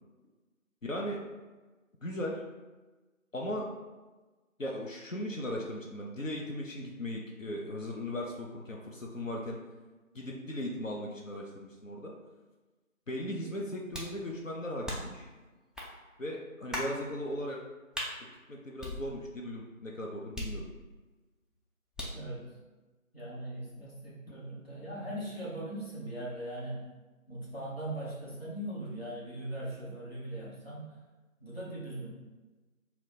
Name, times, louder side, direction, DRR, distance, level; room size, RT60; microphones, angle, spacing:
voice 1, 0.8-1.2 2.0-2.4 3.3-3.7 4.6-9.6 10.1-12.1 13.1-15.3 16.2-17.6 18.2-20.6, left 1 dB, 65° left, -1 dB, 0.6 m, -37 dB
sound 1, 13.9-14.2 14.9-15.2 15.8-15.9 16.7-17.0 17.9-18.1 18.8-19.5 20.4-21.0 22.0-22.3, left 1 dB, ahead, 0.4 m, -38 dB
voice 2, 22.1-22.5 23.1-26.9 27.3-30.9 31.4-32.1, right 1 dB, 45° left, -8 dB, 1.0 m, -40 dB
2.8 x 2.1 x 4.0 m, 1.2 s
figure-of-eight pair, 175°, 42 cm